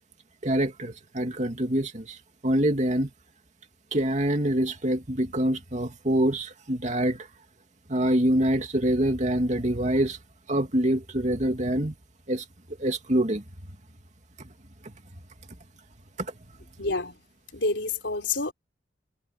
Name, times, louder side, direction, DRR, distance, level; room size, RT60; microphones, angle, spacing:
voice 1, 0.4-3.1 3.9-7.3 7.9-10.2 10.5-11.9 12.3-13.4 14.4-14.5 14.8-14.9 16.2-16.3, right 1 dB, 40° right, 2.6 m, -25 dB
voice 2, 16.8-17.3 17.5-18.5, left 3 dB, 90° left, 3.9 m, -28 dB
head